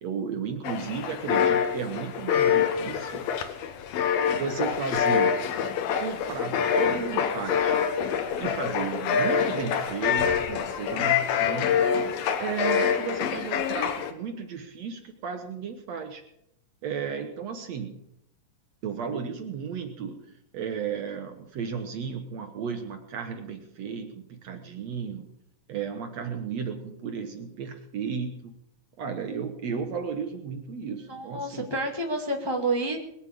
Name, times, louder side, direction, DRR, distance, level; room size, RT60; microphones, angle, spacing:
voice 1, 0.0-3.3 4.3-5.4 6.0-7.8 8.4-11.9 12.4-16.2 16.8-18.0 18.8-25.3 25.7-28.5 29.0-31.7, right 6 dB, 60° right, 6 dB, 2.0 m, -34 dB
sound 1, 0.6-14.1, left 7 dB, 85° left, 3.1 m, -26 dB
voice 2, 31.1-33.0, right 2 dB, 15° left, 2 dB, 0.9 m, -29 dB
21.5 x 7.7 x 8.5 m, 0.78 s
omnidirectional pair, 4.0 m